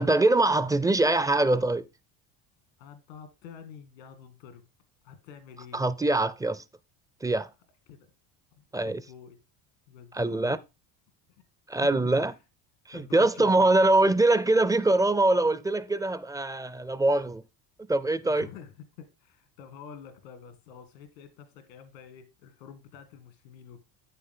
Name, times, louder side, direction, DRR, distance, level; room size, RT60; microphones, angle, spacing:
voice 1, 0.0-1.9 5.7-6.6 7.2-7.5 8.7-9.0 10.1-10.6 11.7-12.3 12.9-17.4 17.9-18.5, right 2 dB, 10° right, 0.4 m, -23 dB
voice 2, 2.8-4.6 5.0-5.8 7.9-8.1 8.6-9.4 9.9-10.6 11.8-12.0 12.9-13.9 18.2-23.8, left 7 dB, 85° left, 2.2 m, -48 dB
8.8 x 6.9 x 3.7 m
hypercardioid pair, 75°, 49 cm